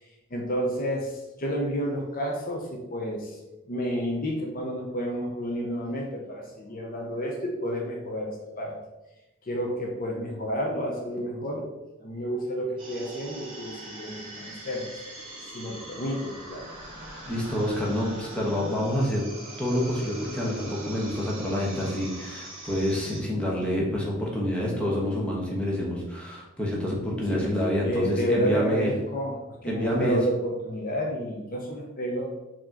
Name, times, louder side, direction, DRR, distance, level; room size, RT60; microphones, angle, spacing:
voice 1, 0.3-3.4 3.7-8.8 9.5-11.7 12.0-14.9 15.5-16.7 27.3-27.5 27.8-29.4 29.6-32.3, equal, 45° left, 0 dB, 0.6 m, -30 dB
sound 1, 12.8-23.2, right 1 dB, 25° right, 1.6 m, -42 dB
voice 2, 17.3-19.2 19.6-28.9 29.7-30.2, left 1 dB, 5° left, -4 dB, 1.0 m, -27 dB
4.8 x 2.9 x 3.8 m, 1.0 s
head